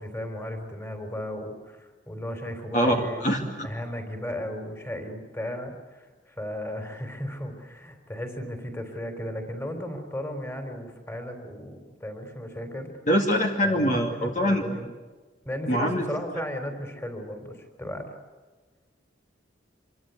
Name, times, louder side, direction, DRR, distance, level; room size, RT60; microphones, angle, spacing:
voice 1, 0.0-3.2 3.6-12.9 13.6-14.9 15.4-18.1, left 1 dB, 15° left, 6 dB, 3.9 m, -35 dB
voice 2, 2.7-3.7 13.1-14.6 15.7-16.1, equal, 45° left, 2 dB, 2.4 m, -24 dB
27.0 x 24.0 x 8.3 m, 1.3 s
head